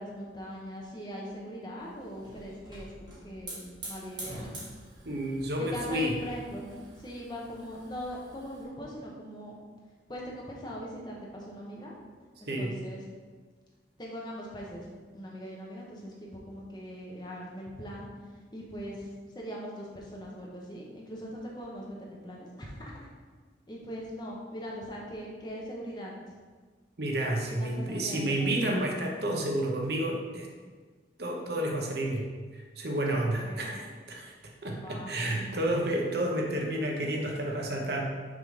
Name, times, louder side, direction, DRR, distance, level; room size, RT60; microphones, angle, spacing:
voice 1, 0.0-4.5 5.6-9.6 10.1-11.9 12.4-13.0 14.0-14.9 15.1-18.1 18.5-22.9 23.7-26.4 27.6-28.5 33.1-33.7 34.7-35.1, equal, 25° left, -3 dB, 1.0 m, -41 dB
Hiss / Fire, 1.8-8.6, right 1 dB, 25° right, 1.7 m, -46 dB
voice 2, 5.0-6.1 12.5-12.7 27.0-30.5 31.2-38.0, right 1 dB, 55° right, 1 dB, 0.9 m, -30 dB
6.1 x 3.8 x 5.0 m, 1.4 s
head